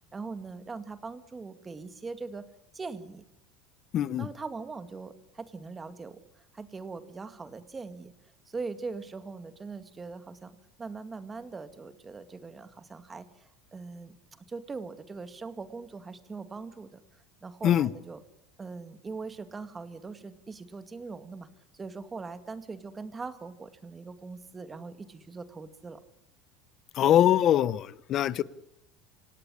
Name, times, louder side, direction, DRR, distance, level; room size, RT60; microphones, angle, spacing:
voice 1, 0.1-2.4 2.7-3.2 4.2-6.2 6.5-8.1 8.5-14.2 14.5-17.0 17.4-18.2 18.6-21.5 21.7-26.0, right 4 dB, 20° right, 11 dB, 2.0 m, -41 dB
voice 2, 3.9-4.3 17.6-17.9 27.0-28.4, left 11 dB, 45° left, 19 dB, 0.9 m, -23 dB
27.5 x 17.5 x 10.0 m, 0.83 s
supercardioid pair, 135°, 0 cm